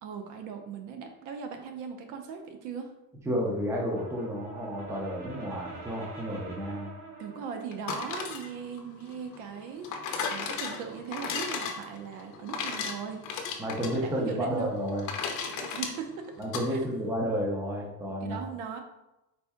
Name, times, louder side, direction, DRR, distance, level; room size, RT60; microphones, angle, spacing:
voice 1, 0.0-2.9 7.2-9.9 10.2-13.5 13.9-14.7 15.5-16.3 16.7-16.8 18.2-18.8, right 6 dB, 65° right, 5 dB, 0.7 m, -39 dB
voice 2, 3.3-6.9 13.6-15.1 16.4-18.4, equal, 10° right, -2 dB, 0.5 m, -31 dB
Brass instrument, 3.6-7.8, right 3 dB, 85° right, 1.3 m, -45 dB
sound 1, 7.7-16.7, left 5 dB, 60° left, 0.7 m, -36 dB
4.2 x 3.5 x 3.5 m, 0.94 s
cardioid pair, 180°, 34 cm